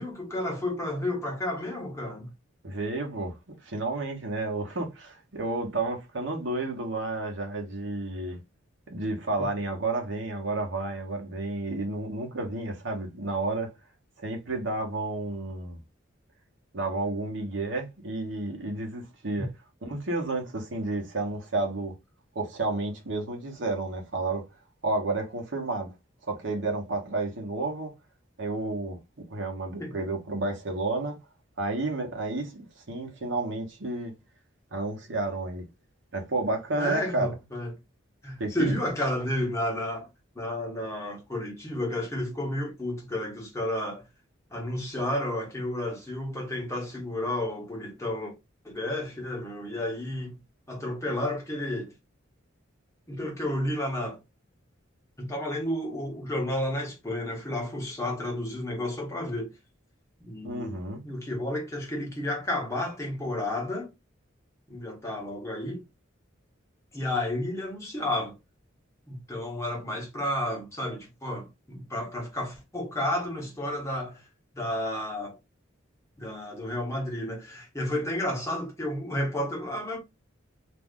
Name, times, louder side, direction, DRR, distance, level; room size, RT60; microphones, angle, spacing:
voice 1, 0.0-2.3 9.4-9.5 29.8-29.9 36.8-37.7 38.2-40.1 40.3-44.0 44.5-48.3 48.6-50.4 50.7-51.9 53.1-54.2 55.2-59.5 60.2-60.8 61.0-63.9 64.7-65.8 66.9-68.3 69.1-74.2 74.5-75.4 76.2-80.0, left 1 dB, 15° left, 1.0 m, -31 dB
voice 2, 2.6-8.4 8.9-13.7 14.2-15.8 16.7-19.5 19.8-21.9 22.3-24.4 24.8-25.9 26.3-27.9 28.4-29.0 29.3-31.2 31.6-34.1 34.7-35.6 36.1-37.3 38.4-38.8 60.4-61.0, right 2 dB, 65° right, 0.9 m, -31 dB
2.6 x 2.3 x 3.6 m
head